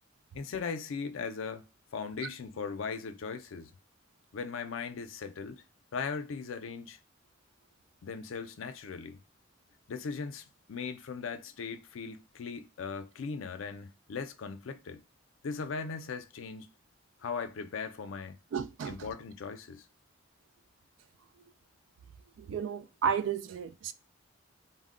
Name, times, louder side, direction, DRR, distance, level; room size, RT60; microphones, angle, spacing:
voice 1, 0.3-1.6 1.9-3.7 4.3-5.6 5.9-7.0 8.0-9.2 9.9-15.0 15.4-16.7 17.2-18.4 18.9-19.9, left 5 dB, 90° left, 0.4 m, -38 dB
voice 2, 18.5-19.0 22.4-23.9, right 7 dB, 75° right, 0.3 m, -32 dB
2.2 x 2.1 x 3.6 m
head